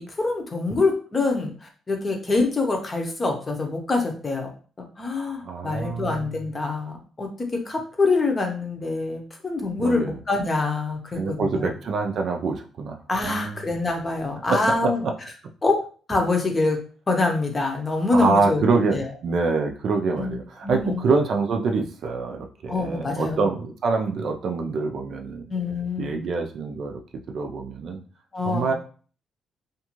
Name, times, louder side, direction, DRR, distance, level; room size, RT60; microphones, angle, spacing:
voice 1, 0.0-4.5 4.8-11.7 13.1-15.0 15.6-15.8 16.1-16.8 17.1-19.1 20.2-20.4 20.6-21.1 22.7-23.5 25.5-26.3 28.3-28.7, left 3 dB, 30° left, 2 dB, 0.7 m, -25 dB
voice 2, 5.4-6.2 9.8-10.1 11.1-13.0 13.2-13.7 14.5-14.9 18.1-25.4 26.0-27.0 27.3-28.0 28.5-28.7, right 4 dB, 65° right, 3 dB, 0.4 m, -25 dB
2.5 x 2.4 x 2.9 m, 0.41 s
cardioid pair, 90°, 0 cm